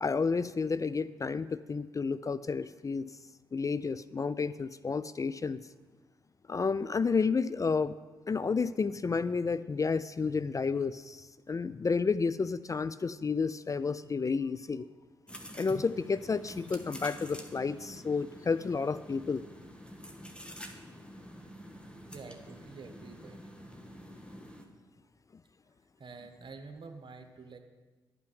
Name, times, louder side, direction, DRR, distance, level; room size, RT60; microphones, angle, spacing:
voice 1, 0.0-3.1 3.5-5.6 6.5-7.9 8.3-14.9 15.5-19.4, left 4 dB, 30° left, 15 dB, 0.4 m, -31 dB
sound 1, 15.3-24.6, equal, 10° left, 1.6 m, -48 dB
voice 2, 22.1-23.4 26.0-27.6, right 4 dB, 45° right, 6 dB, 1.3 m, -48 dB
11.5 x 5.6 x 7.8 m, 1.3 s
hypercardioid pair, 40°, 11 cm